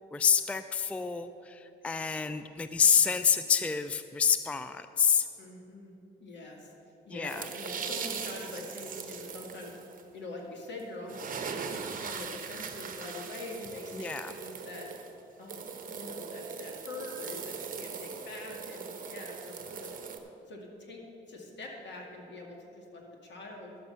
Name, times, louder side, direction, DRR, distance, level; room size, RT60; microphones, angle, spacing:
voice 1, 0.1-5.3 7.1-7.5 13.9-14.3, left 7 dB, 5° left, 10 dB, 0.3 m, -27 dB
voice 2, 5.4-6.7 7.1-9.8 10.1-14.9 15.4-19.9 20.5-21.0 21.3-23.8, left 2 dB, 65° left, 0 dB, 2.2 m, -44 dB
sound 1, 7.3-10.0 10.8-10.9 11.1-20.2, right 6 dB, 45° right, 1.0 m, -40 dB
11.5 x 7.7 x 5.6 m, 2.8 s
cardioid pair, 90°, 20 cm